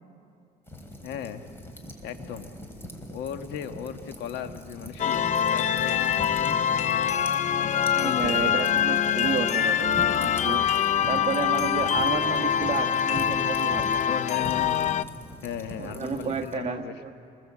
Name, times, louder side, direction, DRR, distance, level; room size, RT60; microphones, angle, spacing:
sound 1, 0.7-16.5, equal, 15° left, 3.4 m, -42 dB
voice 1, 1.0-1.4 2.0-2.5 3.1-6.1 6.5-6.6 7.6-8.5 11.7-11.9 14.1-14.8 15.4-17.1, left 8 dB, 80° left, 8 dB, 1.5 m, -36 dB
sound 2, 5.0-15.0, left 9 dB, 45° left, 0.6 m, -24 dB
voice 2, 8.0-10.6 11.1-14.0 15.8-17.1, right 6 dB, 35° right, 4 dB, 1.3 m, -31 dB
27.5 x 21.5 x 7.4 m, 2.6 s
cardioid pair, 110°, 17 cm